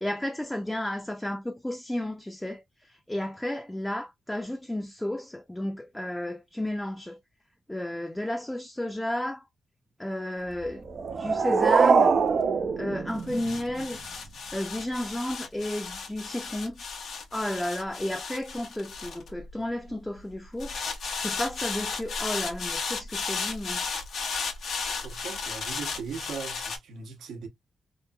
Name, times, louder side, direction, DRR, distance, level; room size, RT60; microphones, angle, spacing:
voice 1, 0.0-7.2 7.7-9.4 10.0-10.8 11.2-12.1 12.8-14.0 14.5-16.8 17.3-20.8 21.2-23.8, left 1 dB, 10° left, 0.5 m, -32 dB
sound 1, 10.5-19.9 20.6-26.8, left 5 dB, 70° left, 0.9 m, -35 dB
sound 2, 10.9-13.8, right 5 dB, 55° right, 0.5 m, -23 dB
voice 2, 25.0-27.5, right 6 dB, 90° right, 0.9 m, -39 dB
3.0 x 2.7 x 2.2 m
cardioid pair, 110°, 0 cm